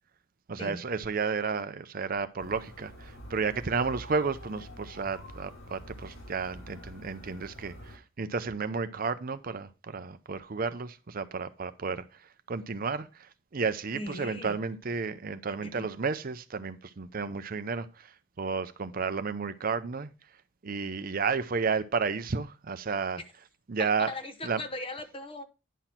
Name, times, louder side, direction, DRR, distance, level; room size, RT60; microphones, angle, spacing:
voice 1, 0.5-20.1 20.6-23.2 23.7-24.1 24.4-24.6, right 5 dB, 45° right, 0.5 m, -32 dB
sound 1, 2.4-8.0, equal, 70° left, 2.4 m, -47 dB
voice 2, 13.9-14.6 15.6-15.9 23.8-25.4, left 1 dB, 25° left, 0.9 m, -39 dB
10.0 x 5.9 x 4.4 m
head